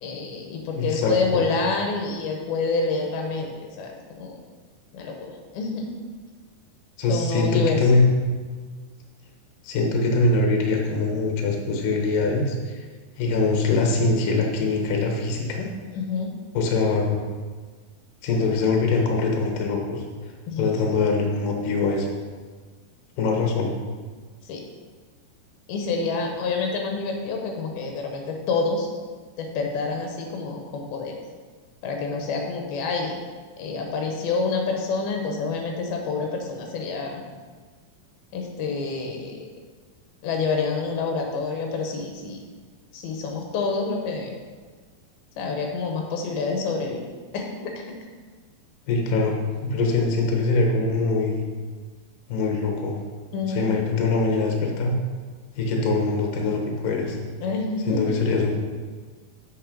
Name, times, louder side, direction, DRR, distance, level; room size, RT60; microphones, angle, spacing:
voice 1, 0.0-4.4 4.9-5.9 7.1-7.9 15.9-16.3 20.5-20.7 24.4-24.6 25.7-28.9 29.4-31.2 31.8-33.2 33.6-37.2 38.3-39.5 40.2-42.4 42.9-44.3 45.4-47.1 47.3-48.0 53.3-53.7 57.4-58.2, left 4 dB, 85° left, 2 dB, 2.9 m, -28 dB
voice 2, 0.8-1.4 7.0-8.1 9.6-12.8 13.2-15.7 16.5-17.2 18.2-20.0 20.6-22.2 23.2-23.7 48.9-49.4 49.6-51.4 52.3-53.0 53.5-55.0 55.6-57.2 57.9-58.6, left 3 dB, 70° left, 1 dB, 2.7 m, -23 dB
8.1 x 6.5 x 5.2 m, 1.5 s
omnidirectional pair, 4.2 m